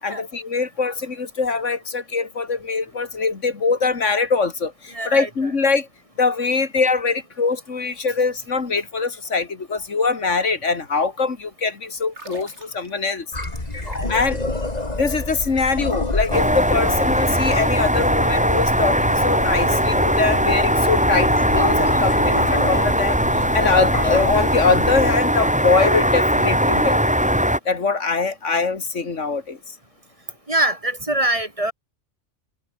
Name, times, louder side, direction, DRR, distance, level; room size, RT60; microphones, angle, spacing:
voice 1, 0.0-5.9 6.2-13.3 14.1-14.4 14.9-27.0 27.7-29.8, left 4 dB, 70° left, 2.5 m, -23 dB
voice 2, 4.9-5.3 13.8-14.1 30.5-31.7, right 1 dB, 25° right, 1.9 m, -23 dB
sound 1, 12.0-14.3 14.6-14.8, right 2 dB, 65° right, 6.2 m, -43 dB
sound 2, 13.3-25.2, left 2 dB, 30° left, 3.0 m, -28 dB
sound 3, 16.3-27.6, equal, 5° right, 3.4 m, -20 dB
omnidirectional pair, 1.3 m